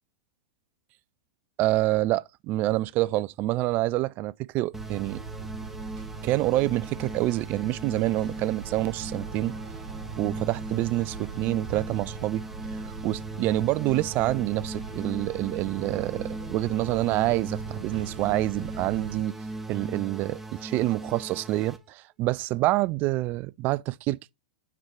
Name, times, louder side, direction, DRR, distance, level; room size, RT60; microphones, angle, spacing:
voice 1, 1.6-5.2 6.2-9.5 10.2-12.4 12.8-19.3 19.7-24.3, right 17 dB, 40° right, 0.3 m, -27 dB
sound 1, 4.7-21.8, right 2 dB, 5° right, 1.0 m, -39 dB
sound 2, 4.7-19.2, right 5 dB, 60° right, 2.1 m, -41 dB
5.9 x 4.4 x 4.3 m
hypercardioid pair, 105°, 5 cm